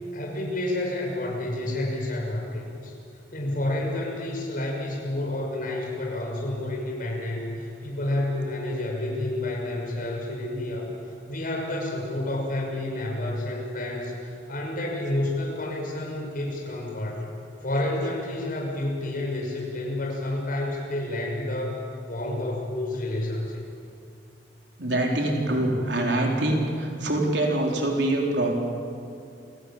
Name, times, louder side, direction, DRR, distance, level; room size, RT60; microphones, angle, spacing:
voice 1, 0.1-2.9 3.3-10.9 11.3-17.2 17.6-21.8 22.0-23.6, left 1 dB, 55° left, -1 dB, 6.3 m, -29 dB
voice 2, 24.8-28.5, right 1 dB, 75° right, 0 dB, 4.2 m, -24 dB
28.5 x 18.5 x 8.8 m, 2.4 s
head